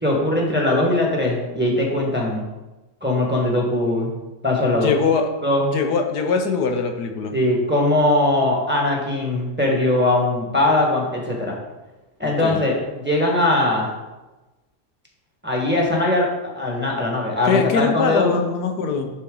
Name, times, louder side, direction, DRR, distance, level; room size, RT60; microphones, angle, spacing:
voice 1, 0.0-2.4 3.0-4.1 4.4-4.9 5.4-5.7 7.3-11.6 12.2-13.9 15.4-18.4, left 1 dB, 5° right, -1 dB, 1.3 m, -20 dB
voice 2, 4.7-5.3 5.7-7.3 12.2-12.6 17.4-19.1, left 5 dB, 90° left, 4 dB, 1.4 m, -22 dB
9.8 x 4.3 x 3.9 m, 1.1 s
omnidirectional pair, 1.6 m